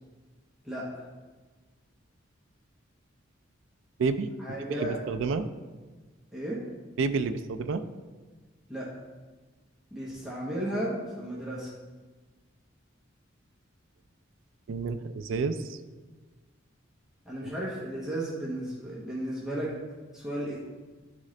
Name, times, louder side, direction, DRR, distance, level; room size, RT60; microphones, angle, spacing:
voice 1, 0.6-1.1 4.4-5.0 6.3-6.6 8.7-8.9 9.9-11.7 17.2-19.7 20.1-20.6, right 1 dB, ahead, -7 dB, 1.0 m, -34 dB
voice 2, 4.8-5.5 7.0-7.8 14.7-15.8 17.4-17.5, right 4 dB, 70° right, 9 dB, 0.4 m, -29 dB
10.0 x 3.7 x 3.2 m, 1.3 s
head